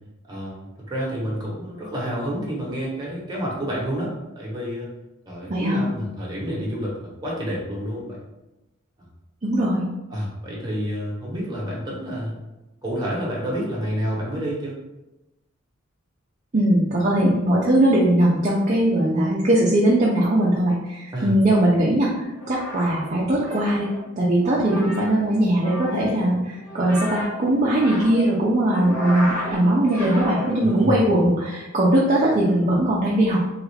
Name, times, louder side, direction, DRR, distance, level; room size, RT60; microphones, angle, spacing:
voice 1, 0.3-4.9 5.3-8.2 10.1-12.4 12.8-14.7 21.1-21.3 30.6-31.1, equal, 20° right, -5 dB, 0.9 m, -29 dB
voice 2, 5.5-5.8 9.4-9.9 16.5-23.9 24.2-33.4, right 1 dB, 35° right, -5 dB, 0.5 m, -20 dB
sound 1, 22.2-30.9, left 2 dB, 80° left, 1.3 m, -34 dB
3.1 x 2.4 x 3.2 m, 0.99 s
head